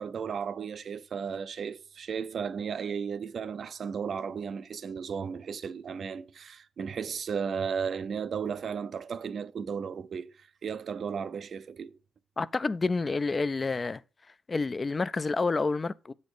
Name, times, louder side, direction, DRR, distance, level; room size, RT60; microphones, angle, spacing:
voice 1, 0.0-12.0, right 6 dB, 65° right, 0.4 m, -35 dB
voice 2, 12.4-14.0 14.5-16.1, left 3 dB, 35° left, 0.3 m, -29 dB
8.1 x 4.2 x 4.8 m
cardioid pair, 90°, 0 cm